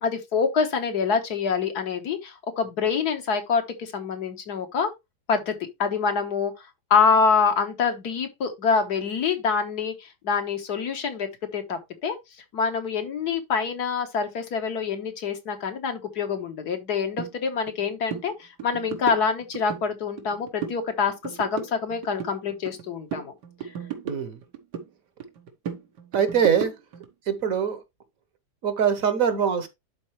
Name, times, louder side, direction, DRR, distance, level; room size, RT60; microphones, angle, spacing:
voice 1, 0.0-4.9 5.3-12.2 12.5-23.3, left 5 dB, 70° left, 1.8 m, -26 dB
sound 1, 17.2-17.3 17.7-17.8 18.1-18.3 18.6-19.8 20.2-20.8 21.1-22.8 23.1-24.9 25.2-27.1, right 7 dB, 85° right, 1.8 m, -35 dB
voice 2, 24.0-24.4 26.1-26.7 27.3-27.8 28.6-29.7, right 7 dB, 60° right, 1.3 m, -23 dB
11.5 x 4.2 x 3.0 m
omnidirectional pair, 1.8 m